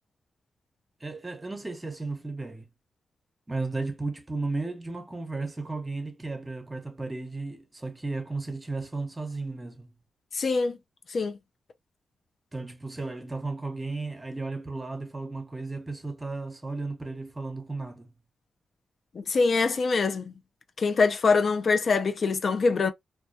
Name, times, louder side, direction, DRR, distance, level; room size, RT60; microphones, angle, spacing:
voice 1, 1.0-2.7 3.5-9.9 12.5-18.1, right 3 dB, 25° right, 0.8 m, -34 dB
voice 2, 10.3-10.8 11.1-11.4 19.2-20.3 20.8-22.9, left 4 dB, 60° left, 0.4 m, -24 dB
2.2 x 2.2 x 2.6 m
cardioid pair, 60°, 0 cm